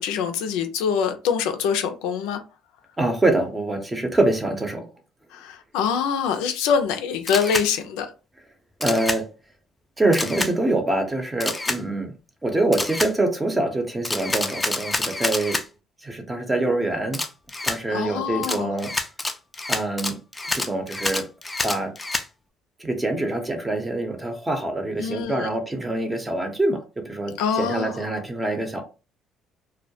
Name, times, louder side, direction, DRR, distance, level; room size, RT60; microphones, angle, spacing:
voice 1, 0.0-2.4 5.3-8.1 17.9-18.7 25.0-25.5 27.4-28.1, left 7 dB, 90° left, 0.4 m, -25 dB
voice 2, 3.0-4.9 8.8-9.2 10.0-12.1 12.4-15.6 16.0-17.2 17.6-18.9 19.7-20.2 20.5-21.2 21.6-21.9 22.8-28.8, right 2 dB, 15° right, 0.7 m, -25 dB
Camera, 7.3-7.7 8.8-9.2 10.1-10.5 11.4-11.8 12.7-13.1 14.0-15.6 17.1-17.8 18.4-22.3, left 2 dB, 15° left, 0.4 m, -27 dB
2.3 x 2.1 x 2.7 m
cardioid pair, 95°, 0 cm